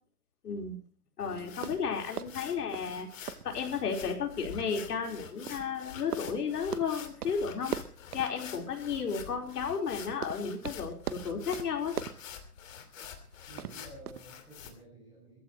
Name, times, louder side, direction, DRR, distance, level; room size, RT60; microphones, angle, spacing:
voice 1, 0.4-0.8 1.2-3.1 3.4-7.8 8.1-12.0, left 6 dB, 85° left, 3 dB, 4.7 m, -33 dB
sound 1, 1.2-14.7, left 8 dB, 60° left, 2.9 m, -47 dB
sound 2, 1.3-14.4, right 10 dB, 75° right, 1.2 m, -43 dB
voice 2, 13.5-15.4, right 1 dB, 10° right, -3 dB, 6.2 m, -52 dB
22.0 x 15.0 x 3.2 m, 0.41 s
hypercardioid pair, 170°, 45 cm